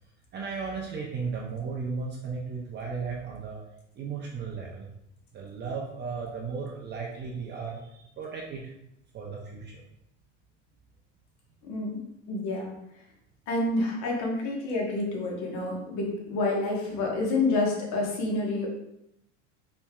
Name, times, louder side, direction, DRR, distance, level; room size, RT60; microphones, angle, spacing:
voice 1, 0.3-3.6 4.0-4.9 5.3-8.7 9.1-9.8, right 5 dB, 30° right, -2 dB, 0.6 m, -35 dB
voice 2, 12.3-12.7 13.5-18.7, left 2 dB, 50° left, -1 dB, 1.3 m, -28 dB
4.2 x 3.3 x 2.4 m, 0.81 s
supercardioid pair, 115°, 36 cm